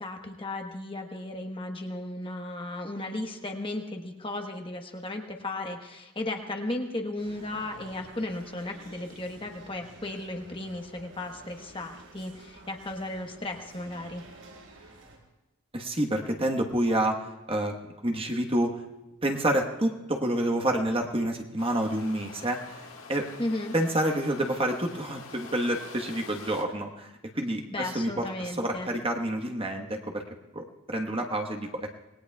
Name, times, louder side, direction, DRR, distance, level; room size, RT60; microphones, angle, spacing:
voice 1, 0.0-14.2 23.4-23.7 27.7-28.9, left 2 dB, 25° left, 3 dB, 1.2 m, -35 dB
sound 1, 7.2-15.2, right 2 dB, 85° right, 4.1 m, -51 dB
voice 2, 15.7-17.2 17.5-17.7 18.0-18.8 19.2-23.3 23.7-27.1 27.3-30.2 30.5-31.9, right 1 dB, 25° right, 2 dB, 1.3 m, -28 dB
sound 2, 21.6-26.6, left 4 dB, 70° left, 1.8 m, -46 dB
27.0 x 19.5 x 2.3 m, 1.0 s
head